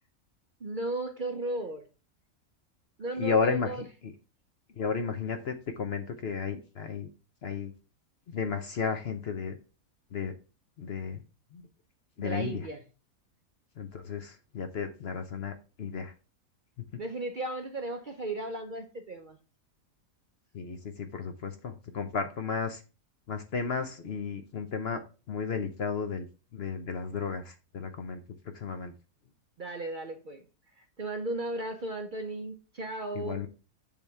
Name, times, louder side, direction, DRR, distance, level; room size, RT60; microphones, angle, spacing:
voice 1, 0.6-1.8 3.0-3.8 12.2-12.8 17.0-19.4 29.6-30.4 30.8-33.4, right 2 dB, 45° right, 0.7 m, -35 dB
voice 2, 3.2-3.7 4.0-4.1 4.8-7.1 7.4-7.7 8.3-9.6 10.1-10.3 10.8-11.2 11.5-11.6 12.2-12.6 13.8-16.1 20.5-22.8 23.3-25.0 25.3-26.3 26.5-28.2 28.5-28.9 33.2-33.5, left 5 dB, 55° left, 0.8 m, -33 dB
7.0 x 3.4 x 5.6 m
omnidirectional pair, 1.5 m